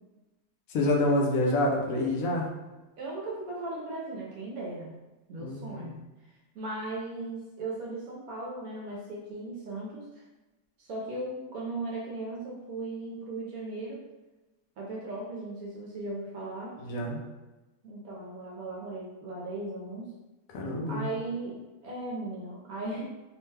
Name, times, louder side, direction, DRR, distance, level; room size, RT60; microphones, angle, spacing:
voice 1, 0.7-2.5 5.4-6.0 16.8-17.2 20.5-21.1, left 1 dB, 70° left, -1 dB, 1.0 m, -27 dB
voice 2, 3.0-4.9 5.3-5.9 6.5-10.2 10.8-14.0 14.8-16.7 17.8-20.1 20.9-23.0, right 2 dB, 70° right, -4 dB, 1.1 m, -37 dB
3.0 x 2.2 x 3.2 m, 1.1 s
omnidirectional pair, 1.7 m